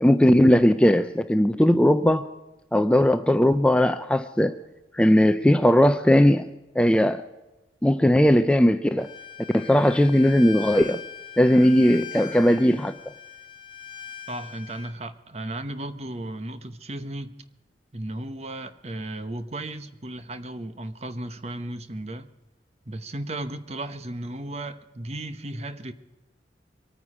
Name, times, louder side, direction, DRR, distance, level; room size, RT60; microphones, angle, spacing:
voice 1, 0.0-2.3 2.7-4.6 4.9-6.5 6.8-7.2 7.8-9.1 9.5-11.0 11.4-13.0, equal, 5° left, 0.4 m, -18 dB
Bowed string instrument, 9.0-14.9, left 8 dB, 30° left, 0.9 m, -40 dB
voice 2, 14.3-17.4 17.9-22.3 22.9-25.9, right 1 dB, 35° right, 0.9 m, -35 dB
24.0 x 9.4 x 4.9 m
head